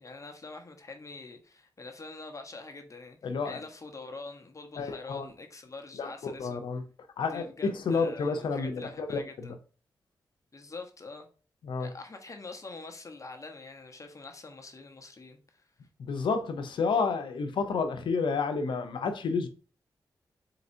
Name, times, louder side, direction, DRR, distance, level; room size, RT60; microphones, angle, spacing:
voice 1, 0.0-6.6 7.3-9.5 10.5-11.3 11.8-15.6, left 3 dB, 40° left, 1.1 m, -45 dB
voice 2, 3.2-3.6 4.8-5.3 6.0-6.8 7.2-9.6 11.6-11.9 16.0-19.5, left 4 dB, 85° left, 0.7 m, -30 dB
4.2 x 3.9 x 2.7 m
cardioid pair, 50°, 8 cm